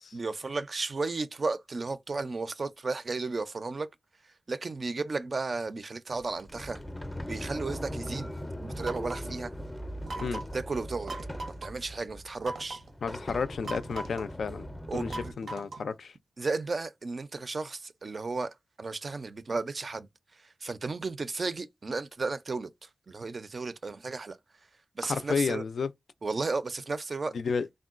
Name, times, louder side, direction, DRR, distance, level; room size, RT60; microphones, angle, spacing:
voice 1, 0.1-3.9 4.5-6.8 7.3-8.3 8.6-9.5 10.2-10.3 10.5-11.1 11.6-12.8 14.9-15.3 16.4-20.1 20.4-24.4 25.0-25.6 26.2-27.3, right 3 dB, 50° right, 0.4 m, -34 dB
Sliding door, 6.1-15.3, equal, 10° left, 0.5 m, -40 dB
sound 1, 8.8-9.3 10.1-10.6 11.1-11.7 12.4-12.9 13.6-14.3 15.1-15.9, right 2 dB, 85° right, 0.7 m, -40 dB
voice 2, 13.0-15.1 15.4-16.1 25.0-25.9 27.3-27.7, left 5 dB, 90° left, 0.3 m, -31 dB
3.6 x 2.2 x 2.4 m
wide cardioid pair, 100°, 0 cm